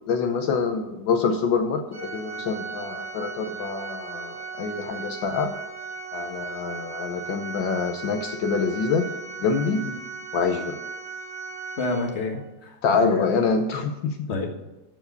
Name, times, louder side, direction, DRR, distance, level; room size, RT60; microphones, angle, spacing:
voice 1, 0.1-5.5 6.1-9.1 9.4-9.8 10.3-10.8 12.8-14.3, left 5 dB, 75° left, 6 dB, 1.5 m, -26 dB
Organ, 1.9-12.5, right 4 dB, 30° right, 1.0 m, -37 dB
voice 2, 11.8-13.2 14.3-14.5, left 3 dB, 35° left, 3 dB, 1.5 m, -29 dB
14.0 x 4.9 x 6.6 m, 0.99 s
omnidirectional pair, 2.2 m